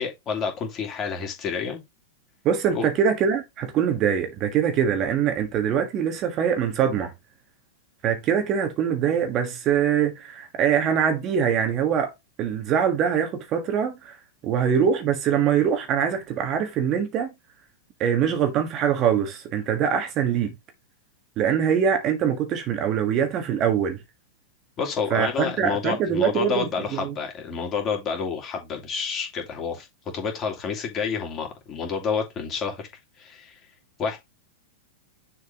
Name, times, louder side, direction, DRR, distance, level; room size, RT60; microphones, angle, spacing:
voice 1, 0.0-1.8 2.7-2.9 24.8-29.9 30.1-32.8 33.2-33.6 34.0-34.2, left 5 dB, 30° left, 2.9 m, -29 dB
voice 2, 2.4-7.1 8.0-12.1 12.4-14.2 14.4-17.3 18.0-20.5 21.4-24.0 25.1-27.1, right 8 dB, 35° right, 1.5 m, -23 dB
6.8 x 4.6 x 3.6 m
hypercardioid pair, 100°, 0 cm